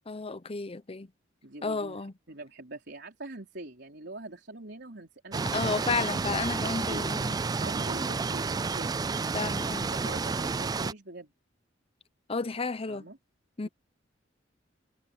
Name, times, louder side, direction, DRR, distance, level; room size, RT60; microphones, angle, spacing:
voice 1, 0.1-1.1 1.6-2.1 5.5-7.4 9.3-9.9 12.3-13.0 13.6-13.7, left 4 dB, 30° left, 0.8 m, -32 dB
voice 2, 1.4-2.0 2.3-5.9 6.6-7.0 7.6-9.0 9.9-11.3 12.9-13.2 13.6-13.7, right 2 dB, 60° right, 4.3 m, -43 dB
sound 1, 5.3-10.9, right 4 dB, 20° right, 0.3 m, -30 dB
head